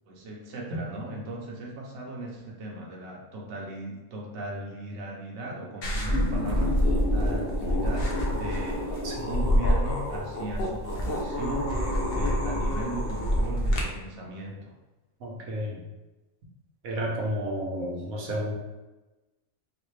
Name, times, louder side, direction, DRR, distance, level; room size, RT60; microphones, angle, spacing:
voice 1, 0.1-14.7, right 1 dB, 60° right, -2 dB, 0.9 m, -38 dB
sound 1, 5.8-13.8, equal, 55° left, 0.8 m, -26 dB
voice 2, 15.2-15.8 16.8-18.5, equal, 85° right, -2 dB, 1.2 m, -31 dB
4.0 x 2.4 x 3.2 m, 1.1 s
omnidirectional pair, 1.4 m